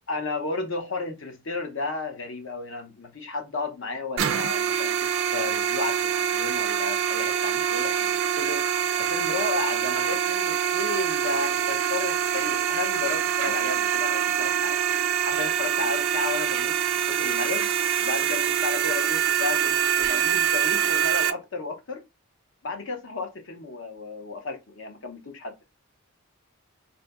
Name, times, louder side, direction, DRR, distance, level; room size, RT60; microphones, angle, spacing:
voice 1, 0.1-8.6 9.0-14.8 15.3-16.8 17.1-17.7 18.0-22.0 22.6-25.6, left 3 dB, 60° left, 0.7 m, -33 dB
sound 1, 4.2-21.3, right 9 dB, 60° right, 0.4 m, -25 dB
2.6 x 2.6 x 3.4 m
head